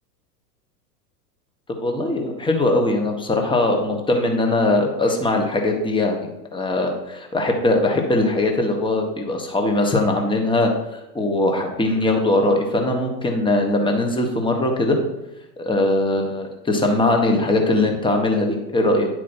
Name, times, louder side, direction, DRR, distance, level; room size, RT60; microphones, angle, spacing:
voice 1, 1.7-15.0 15.6-19.1, left 2 dB, 10° left, 3 dB, 1.3 m, -21 dB
9.6 x 4.5 x 4.5 m, 0.94 s
hypercardioid pair, 95°, 49 cm